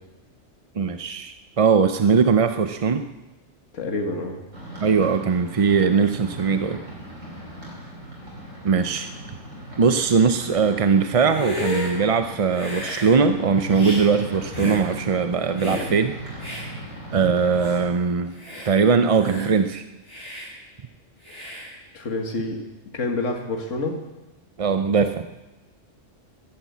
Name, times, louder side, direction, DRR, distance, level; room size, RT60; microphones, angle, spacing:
voice 1, 0.8-3.0 4.8-6.8 8.6-9.1 9.8-16.1 16.4-16.6 17.1-18.3 18.6-19.8 24.6-25.3, right 5 dB, 40° right, 9 dB, 0.5 m, -20 dB
voice 2, 3.7-4.4 21.9-22.6 22.9-23.9, left 2 dB, 80° left, 3 dB, 2.0 m, -27 dB
sound 1, 4.5-17.9, right 1 dB, 80° right, 5.7 m, -39 dB
Hiss, 11.2-11.9 12.5-13.1 13.7-14.0 14.5-14.8 15.6-15.9 16.4-16.6 17.2-17.3 17.6-17.8 18.3-18.7 19.2-19.6 20.1-20.5 21.2-21.7, left 1 dB, 15° left, 7.5 m, -32 dB
13.5 x 12.0 x 8.4 m, 1.0 s
omnidirectional pair, 1.3 m